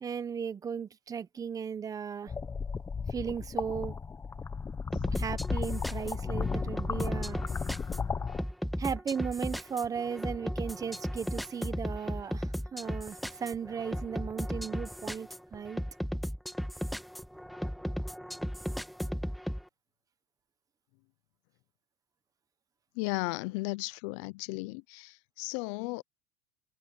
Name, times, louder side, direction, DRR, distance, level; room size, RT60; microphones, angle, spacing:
voice 1, 0.0-2.3 3.1-4.0 5.1-7.4 8.8-15.8, right 7 dB, 20° right, 0.9 m, -36 dB
sound 1, 2.3-8.4, left 5 dB, 15° left, 1.0 m, -34 dB
sound 2, 4.9-19.6, equal, ahead, 1.5 m, -36 dB
voice 2, 23.0-26.0, left 25 dB, 65° left, 0.6 m, -35 dB
supercardioid pair, 140°, 17 cm